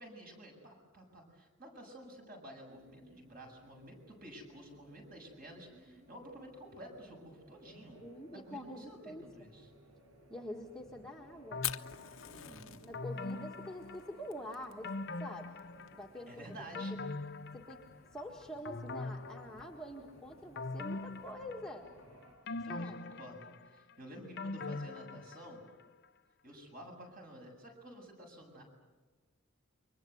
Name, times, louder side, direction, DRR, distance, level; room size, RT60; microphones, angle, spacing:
voice 1, 0.0-8.0 8.3-9.7 12.2-12.8 16.3-16.9 22.5-23.4 23.7-25.6 26.4-28.6, right 1 dB, 40° right, 2 dB, 7.5 m, -51 dB
sound 1, 2.7-22.4, equal, 80° right, 6.4 m, -60 dB
voice 2, 8.0-9.5 10.3-11.6 12.8-14.9 15.2-15.5 15.9-16.5 16.8-16.9 17.5-17.8 18.1-21.9 22.7-23.0, equal, 5° left, 0 dB, 1.7 m, -46 dB
Fire, 11.5-21.3, left 13 dB, 75° left, 1.0 m, -48 dB
sound 2, 11.5-12.3 12.9-14.4 14.8-16.2 16.5-18.2 18.7-20.0 20.6-22.0 22.5-25.7 26.0-26.1, left 3 dB, 50° left, 0.8 m, -42 dB
29.0 x 24.5 x 8.1 m, 1.3 s
head